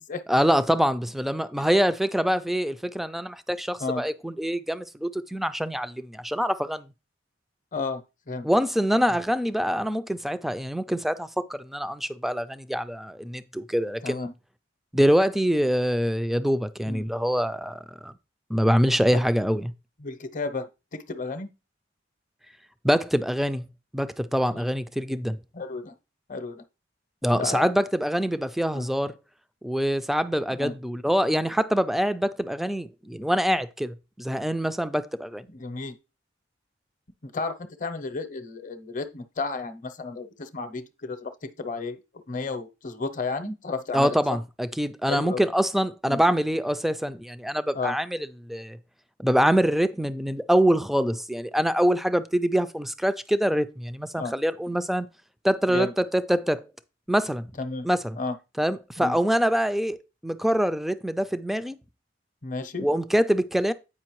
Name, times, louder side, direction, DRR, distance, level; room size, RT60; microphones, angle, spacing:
voice 1, 0.3-6.9 8.4-14.3 14.9-18.1 18.5-19.7 22.8-23.6 23.9-25.4 27.2-29.1 29.6-35.5 43.9-48.8 49.2-55.1 55.4-56.6 57.1-57.5 57.8-58.2 58.6-61.8 62.8-63.7, equal, ahead, 0.3 m, -25 dB
voice 2, 7.7-8.5 14.0-14.3 16.9-17.0 19.1-19.2 20.0-21.5 24.5-24.7 25.5-26.0 26.3-26.6 27.3-27.7 28.7-28.9 30.5-30.7 35.5-36.0 37.2-42.0 42.3-44.4 45.1-45.4 46.1-46.2 47.7-48.0 54.2-54.3 55.7-55.9 57.6-57.9 58.2-58.3 59.0-59.1 62.4-62.9, left 3 dB, 45° left, 0.7 m, -33 dB
8.5 x 5.0 x 3.0 m
head